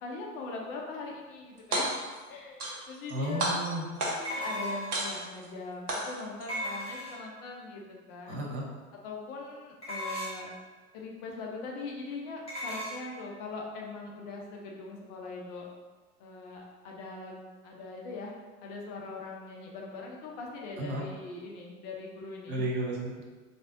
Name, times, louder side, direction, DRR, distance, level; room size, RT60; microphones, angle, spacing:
voice 1, 0.0-1.9 2.3-3.5 4.0-7.8 8.1-8.5 9.0-10.5 10.9-15.7 16.2-18.3 18.6-22.6, left 3 dB, 35° left, -1 dB, 0.6 m, -41 dB
sound 1, 1.6-2.2 2.6-3.1 3.4-4.4 4.9-5.5 5.9-6.5, right 1 dB, 85° right, 0.9 m, -32 dB
voice 2, 3.1-3.9 8.3-8.6 20.8-21.0 22.5-23.3, right 1 dB, 25° right, -2 dB, 0.6 m, -33 dB
sound 2, 4.2-5.1 6.5-7.4 9.8-10.5 12.5-13.0, equal, 15° left, 1.1 m, -36 dB
3.3 x 2.5 x 2.5 m, 1.4 s
hypercardioid pair, 105°, 44 cm